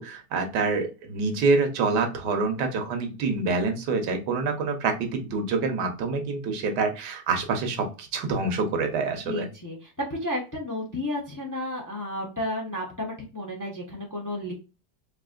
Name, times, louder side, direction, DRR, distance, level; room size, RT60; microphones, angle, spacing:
voice 1, 0.0-9.5, right 4 dB, 85° right, 5 dB, 1.5 m, -26 dB
voice 2, 9.3-14.5, left 1 dB, 20° left, -1 dB, 0.6 m, -32 dB
4.7 x 2.7 x 2.4 m, 0.32 s
omnidirectional pair, 1.8 m